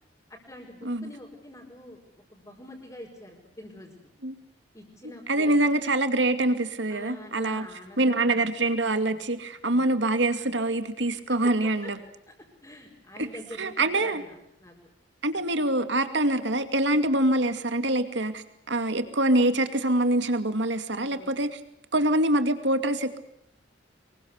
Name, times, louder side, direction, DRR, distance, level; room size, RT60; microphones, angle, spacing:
voice 1, 0.3-2.0 2.3-3.9 4.7-5.7 6.9-8.5 9.6-9.9 11.3-11.9 12.3-12.4 12.6-14.7 20.9-21.4, left 1 dB, 20° left, -4 dB, 5.2 m, -45 dB
voice 2, 5.3-7.6 8.0-12.0 13.6-14.2 15.2-21.6 21.9-23.2, right 1 dB, 75° right, 9 dB, 2.4 m, -25 dB
25.5 x 23.0 x 8.2 m, 0.75 s
head